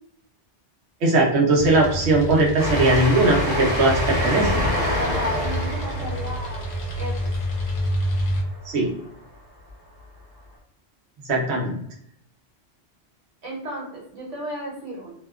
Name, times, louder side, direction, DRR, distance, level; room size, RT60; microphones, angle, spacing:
voice 1, 1.0-4.6 8.7-8.9 11.3-11.8, right 2 dB, 70° right, -2 dB, 0.9 m, -19 dB
sound 1, 1.6-8.4, equal, 65° left, 0.8 m, -28 dB
Train, 2.6-8.7, left 1 dB, 20° right, 1.0 m, -28 dB
Explosion, 4.3-6.5, left 1 dB, 40° right, 0.7 m, -33 dB
voice 2, 4.9-6.7 7.0-7.3 13.4-15.1, equal, 85° right, -4 dB, 1.2 m, -33 dB
2.7 x 2.1 x 2.3 m, 0.71 s
omnidirectional pair, 1.2 m